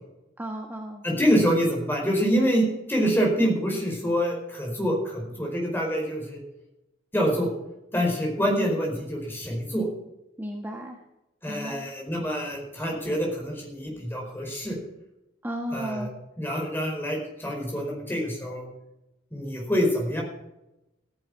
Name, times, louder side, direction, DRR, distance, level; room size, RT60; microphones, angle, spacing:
voice 1, 0.4-1.0 10.4-11.0 11.5-11.8 15.4-16.1, equal, 10° right, 1 dB, 1.4 m, -34 dB
voice 2, 1.0-6.4 7.1-7.5 7.9-9.9 11.4-14.8 15.7-16.1 16.4-18.6 19.3-20.2, equal, 10° left, 0 dB, 4.9 m, -26 dB
15.0 x 10.5 x 6.2 m, 0.92 s
head